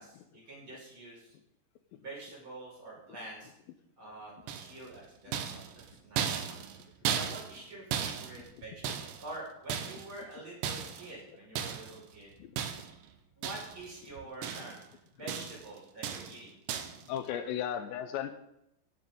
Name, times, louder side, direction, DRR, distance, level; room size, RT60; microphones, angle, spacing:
voice 1, 0.0-1.3 2.0-3.5 4.0-6.6 7.1-12.3 13.4-14.8 15.2-16.5, right 2 dB, 30° right, -4 dB, 5.8 m, -47 dB
sound 1, 4.5-4.9 5.3-9.3 9.7-10.2 10.6-11.1 11.6-12.0 12.6-13.0 13.4-13.9 14.2-14.9 15.3-15.7 16.0-16.4 16.7-17.0, right 8 dB, 75° right, 3.0 m, -36 dB
voice 2, 5.3-5.6 6.2-6.3 7.1-7.2 12.4-12.6 16.3-16.4 17.1-18.4, left 10 dB, 80° left, 8 dB, 3.0 m, -37 dB
17.0 x 9.5 x 3.8 m, 0.80 s
omnidirectional pair, 5.1 m